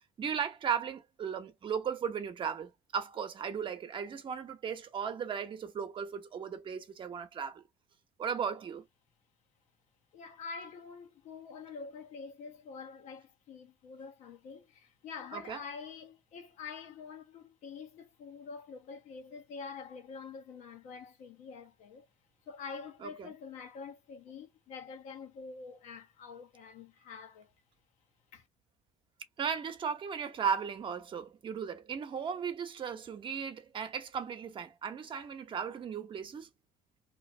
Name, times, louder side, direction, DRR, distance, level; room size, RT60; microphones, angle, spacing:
voice 1, 0.2-7.6 8.2-8.8 15.3-15.6 23.0-23.3 29.4-36.5, right 7 dB, 40° right, 0.9 m, -36 dB
voice 2, 10.1-22.1 22.5-27.5 28.3-28.5, left 5 dB, 70° left, 1.1 m, -46 dB
3.0 x 2.6 x 4.3 m
cardioid pair, 105°, 13 cm